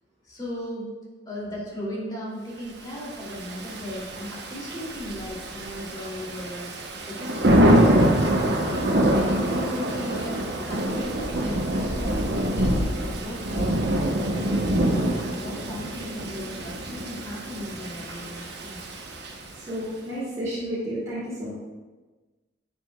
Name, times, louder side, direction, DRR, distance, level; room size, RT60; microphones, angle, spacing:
voice 1, 0.2-0.9 1.2-9.0 9.5-18.8, equal, 20° left, -5 dB, 2.9 m, -37 dB
Thunder / Rain, 3.1-19.7, right 1 dB, 60° right, 1.1 m, -25 dB
voice 2, 19.7-21.5, equal, 20° right, -11 dB, 2.7 m, -31 dB
11.5 x 8.2 x 2.4 m, 1.3 s
head